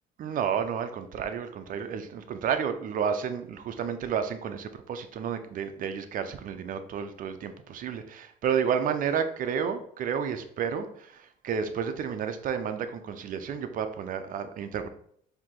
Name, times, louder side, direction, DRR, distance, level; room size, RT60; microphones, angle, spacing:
voice 1, 0.2-14.9, right 7 dB, 55° right, 9 dB, 0.5 m, -31 dB
4.6 x 2.8 x 3.8 m, 0.65 s
cardioid pair, 110°, 17 cm